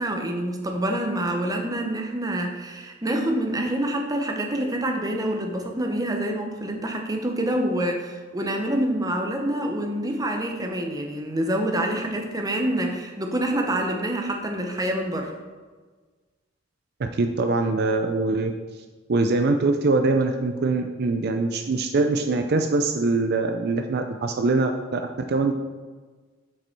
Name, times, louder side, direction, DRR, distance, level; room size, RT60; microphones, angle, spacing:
voice 1, 0.0-15.3, right 1 dB, 20° right, 3 dB, 0.9 m, -26 dB
voice 2, 17.0-18.5 19.1-25.5, right 3 dB, 55° right, 6 dB, 0.5 m, -23 dB
7.7 x 5.1 x 4.5 m, 1.4 s
head